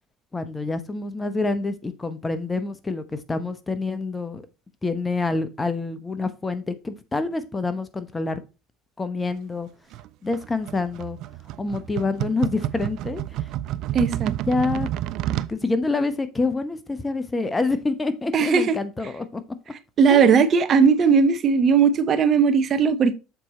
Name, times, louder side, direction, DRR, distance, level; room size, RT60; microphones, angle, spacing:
voice 1, 0.3-4.4 4.8-8.4 9.0-9.7 10.2-11.2 11.6-13.5 14.5-14.9 15.5-19.4 20.1-20.4, left 3 dB, 15° left, 0.9 m, -27 dB
sound 1, 9.9-15.5, right 13 dB, 60° right, 0.4 m, -30 dB
voice 2, 13.9-14.3 18.3-18.7 20.0-23.1, right 6 dB, 40° right, 0.8 m, -18 dB
6.9 x 4.5 x 4.1 m
hypercardioid pair, 85°, 0 cm